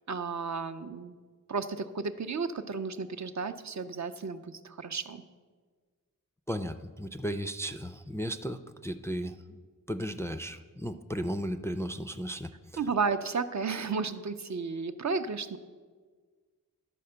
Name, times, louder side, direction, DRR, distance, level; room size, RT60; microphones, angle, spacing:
voice 1, 0.1-1.2 1.5-5.2 12.8-15.6, right 4 dB, 55° right, 9 dB, 0.5 m, -33 dB
voice 2, 6.5-9.6 9.9-12.5, equal, 10° left, 9 dB, 0.3 m, -35 dB
12.0 x 4.3 x 6.7 m, 1.5 s
wide cardioid pair, 55°, 34 cm